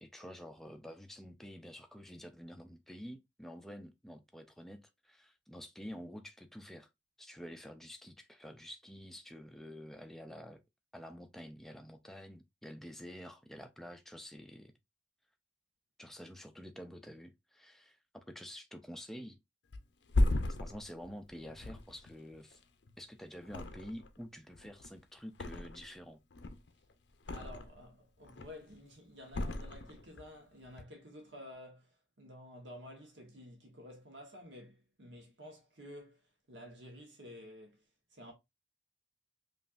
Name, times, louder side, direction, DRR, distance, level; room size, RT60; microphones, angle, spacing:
voice 1, 0.0-6.9 7.2-10.6 10.9-14.7 16.0-19.4 20.5-22.6 23.0-26.2, equal, ahead, 0.4 m, -49 dB
Thump thud, 19.7-23.0 23.4-24.2 24.5-26.0 26.3-27.8 28.2-28.7 29.3-30.3 30.6-30.8, left 2 dB, 60° left, 0.5 m, -36 dB
voice 2, 27.3-36.2 36.5-37.8 38.1-38.3, left 1 dB, 65° right, 1.1 m, -51 dB
5.2 x 2.5 x 2.4 m
head